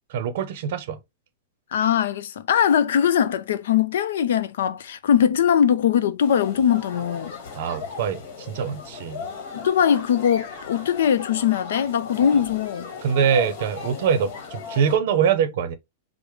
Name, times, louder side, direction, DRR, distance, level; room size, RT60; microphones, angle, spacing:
voice 1, 0.1-1.0 7.5-9.2 13.0-15.7, right 7 dB, 55° right, 0.6 m, -24 dB
voice 2, 1.7-7.4 9.5-12.9, left 8 dB, 75° left, 0.5 m, -21 dB
sound 1, 6.2-15.0, left 5 dB, 45° left, 1.3 m, -37 dB
4.8 x 2.1 x 3.1 m
supercardioid pair, 170°, 0 cm